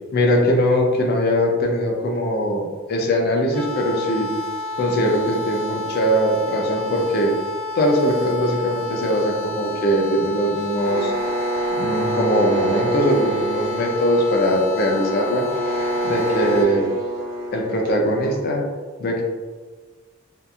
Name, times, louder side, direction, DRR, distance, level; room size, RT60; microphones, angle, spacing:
voice 1, 0.1-4.3 4.8-7.3 7.8-11.1 11.7-15.5 16.0-16.9 17.5-18.6 19.0-19.2, equal, 50° left, 1 dB, 0.5 m, -21 dB
sound 1, 3.5-16.6, left 3 dB, 5° left, 0.7 m, -31 dB
sound 2, 10.8-18.5, right 2 dB, 45° right, 0.7 m, -26 dB
2.8 x 2.4 x 2.3 m, 1.4 s
head